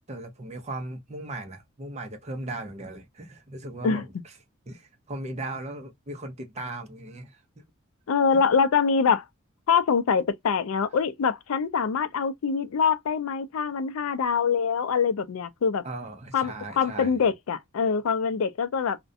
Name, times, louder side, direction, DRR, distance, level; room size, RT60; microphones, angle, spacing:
voice 1, 0.1-4.3 4.7-7.6 8.3-8.4 15.8-17.2 17.8-18.0, right 2 dB, 30° right, 0.6 m, -38 dB
voice 2, 8.1-9.2 9.7-15.9 16.3-19.0, left 6 dB, 85° left, 0.4 m, -24 dB
2.4 x 2.1 x 2.5 m
head